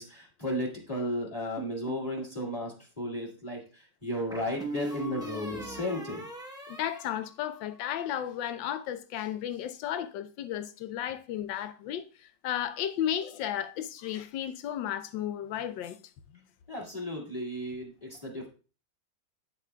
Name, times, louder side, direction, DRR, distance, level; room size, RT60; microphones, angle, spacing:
voice 1, 0.0-6.2 16.7-18.5, left 1 dB, 20° left, 1.9 m, -34 dB
sound 1, 1.6-2.4 4.3-7.9, right 2 dB, 5° right, 0.3 m, -40 dB
voice 2, 6.7-12.0 12.4-16.0, left 10 dB, 80° left, 1.3 m, -34 dB
9.0 x 7.0 x 2.3 m
omnidirectional pair, 2.0 m